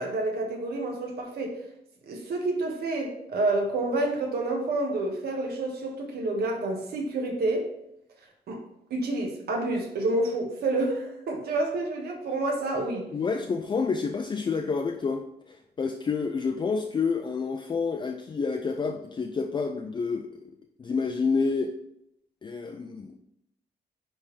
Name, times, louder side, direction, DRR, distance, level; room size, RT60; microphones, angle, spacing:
voice 1, 0.0-1.6 2.1-7.7 8.5-8.6 8.9-13.1, right 2 dB, 80° right, 1 dB, 1.5 m, -28 dB
voice 2, 13.1-20.4 20.8-21.7 22.4-23.2, left 5 dB, 30° left, 4 dB, 0.4 m, -29 dB
9.7 x 3.5 x 3.3 m, 0.78 s
wide cardioid pair, 145°, 16 cm